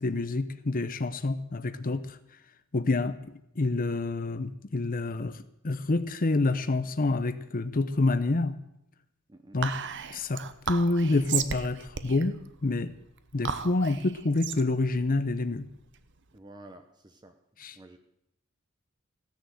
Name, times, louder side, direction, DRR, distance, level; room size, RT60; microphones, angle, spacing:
voice 1, 0.0-2.2 2.7-5.4 5.6-8.5 9.5-9.7 10.1-12.4 12.6-12.9 13.3-15.7 17.6-17.8, left 2 dB, 40° left, 12 dB, 0.7 m, -27 dB
Whispering, 9.6-16.3, right 7 dB, 60° right, 1.0 m, -36 dB
voice 2, 16.3-17.4 17.7-18.0, right 1 dB, 20° right, 6 dB, 0.9 m, -50 dB
16.0 x 10.5 x 7.8 m, 0.82 s
head